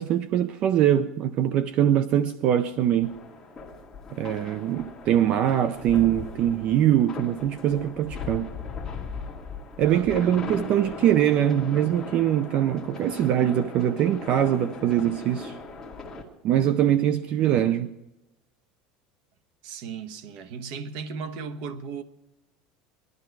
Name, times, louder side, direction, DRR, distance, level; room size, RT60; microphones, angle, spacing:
voice 1, 0.0-3.2 4.1-8.5 9.8-15.6 16.4-17.9, right 11 dB, 35° right, 0.5 m, -23 dB
sound 1, 3.0-16.2, left 4 dB, 10° left, 2.2 m, -39 dB
voice 2, 9.8-10.6 19.6-22.0, right 5 dB, 50° right, 1.2 m, -37 dB
20.0 x 12.0 x 4.7 m
cardioid pair, 175°, 3 cm